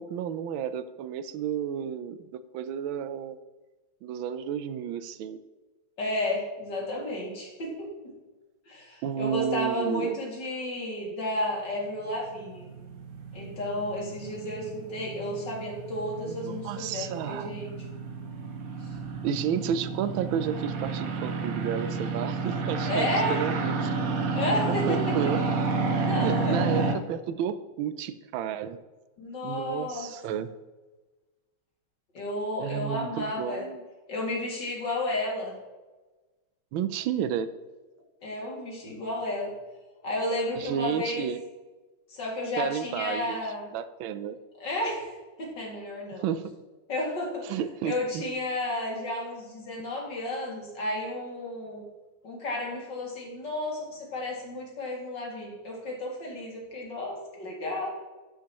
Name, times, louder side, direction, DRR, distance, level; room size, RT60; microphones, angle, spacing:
voice 1, 0.0-3.4 4.0-5.4 9.0-10.2 16.3-17.6 19.2-24.0 24.9-25.4 26.1-28.8 29.4-30.5 32.6-33.8 36.7-37.5 40.5-41.4 42.6-43.4 43.7-44.4 46.2-46.5 47.4-48.2, right 9 dB, 85° right, 13 dB, 1.4 m, -32 dB
voice 2, 6.0-8.1 8.7-12.7 13.3-17.7 22.8-23.4 24.3-25.0 26.0-26.7 29.2-30.4 32.1-33.7 34.1-35.5 38.2-39.5 40.0-41.3 42.1-43.7 44.6-45.1 45.4-46.2 46.9-47.4 47.8-51.8 52.2-57.9, left 1 dB, 65° left, -2 dB, 3.0 m, -32 dB
sound 1, 12.3-27.0, right 4 dB, 55° right, 1.1 m, -31 dB
11.5 x 9.3 x 3.0 m, 1.2 s
omnidirectional pair, 2.1 m